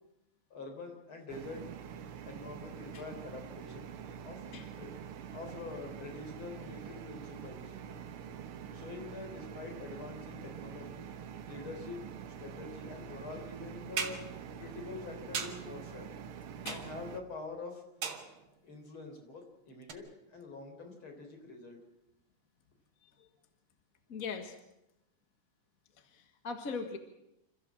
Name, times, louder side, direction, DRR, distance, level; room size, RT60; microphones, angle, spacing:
voice 1, 0.5-1.6 2.2-3.9 4.2-4.9 5.3-7.7 8.7-11.0 11.4-12.0 12.4-16.2 16.7-17.8 18.6-21.8, left 3 dB, 70° left, 3 dB, 4.7 m, -46 dB
sound 1, 1.3-17.2, right 8 dB, 85° right, 2.0 m, -46 dB
sound 2, 14.0-14.3 15.3-15.7 16.7-17.1 18.0-18.5 19.9-20.0, right 6 dB, 65° right, 2.4 m, -37 dB
voice 2, 24.1-24.6 26.0-27.0, left 5 dB, 45° left, 6 dB, 1.8 m, -40 dB
27.0 x 14.5 x 7.6 m, 0.87 s
omnidirectional pair, 2.4 m